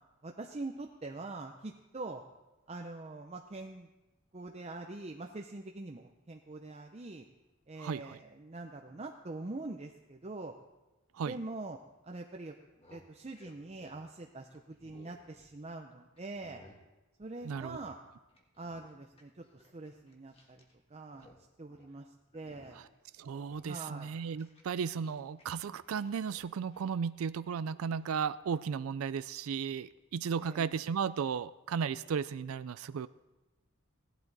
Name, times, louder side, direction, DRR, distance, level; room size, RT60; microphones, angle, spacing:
voice 1, 0.2-2.2 2.7-3.9 4.3-7.3 7.7-10.5 11.2-11.8 12.0-12.6 12.9-16.6 17.2-18.0 18.6-20.6 20.9-22.8 23.6-24.1 30.4-30.8, right 2 dB, 30° right, 3 dB, 0.6 m, -44 dB
voice 2, 7.8-8.2 11.1-11.4 17.4-17.8 23.2-33.1, right 6 dB, 85° right, 15 dB, 0.4 m, -35 dB
sound 1, 12.7-15.8 16.2-16.8 17.4-18.0 18.3-20.7 21.0-21.4 21.7-21.9 22.3-22.9 23.3-25.4 25.7-27.0 27.8-28.0, left 1 dB, 30° left, 1.5 m, -60 dB
16.5 x 11.5 x 4.0 m, 1.1 s
head